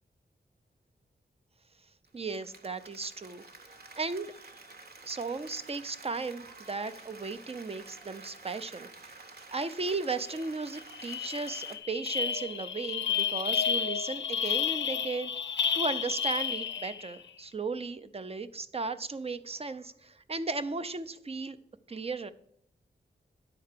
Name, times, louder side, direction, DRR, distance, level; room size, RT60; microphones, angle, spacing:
voice 1, 2.1-3.4 4.0-4.3 5.0-21.6 21.9-22.3, right 3 dB, 35° right, 12 dB, 0.5 m, -36 dB
Applause, 2.1-11.8, right 3 dB, 60° right, 1.0 m, -50 dB
sound 1, 10.3-10.4 10.7-17.2, left 7 dB, 80° left, 0.5 m, -31 dB
9.7 x 4.5 x 6.6 m, 0.71 s
wide cardioid pair, 105°, 19 cm